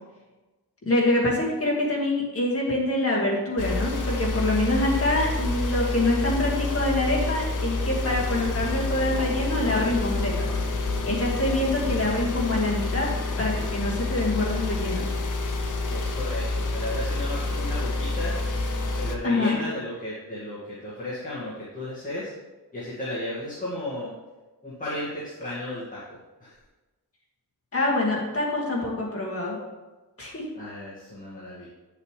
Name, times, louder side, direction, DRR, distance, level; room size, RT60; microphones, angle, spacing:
voice 1, 0.8-10.5 11.0-13.1 13.4-15.1 19.2-19.6 27.7-29.6 30.2-30.4, left 2 dB, 35° left, -3 dB, 1.9 m, -25 dB
sound 1, 3.6-19.2, left 2 dB, 50° left, 0.8 m, -28 dB
voice 2, 15.9-18.4 18.9-22.3 22.7-24.1 24.6-26.0 26.4-26.6 30.5-31.7, left 1 dB, 20° left, -9 dB, 1.9 m, -34 dB
9.1 x 6.8 x 3.3 m, 1.2 s
wide cardioid pair, 175°, 40 cm